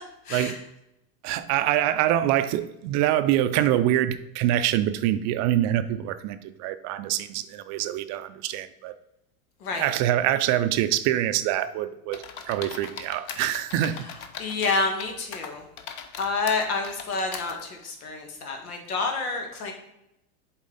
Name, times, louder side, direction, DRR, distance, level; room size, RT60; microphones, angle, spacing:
voice 1, 0.2-0.6 9.6-9.9 14.0-15.6 16.2-19.7, left 3 dB, 85° left, 1.7 m, -29 dB
voice 2, 1.2-8.9 9.7-14.0, right 12 dB, 40° right, 0.4 m, -25 dB
sound 1, 12.1-15.1 15.3-17.5, left 7 dB, 40° left, 0.9 m, -39 dB
7.3 x 4.3 x 4.0 m
supercardioid pair, 120°, 43 cm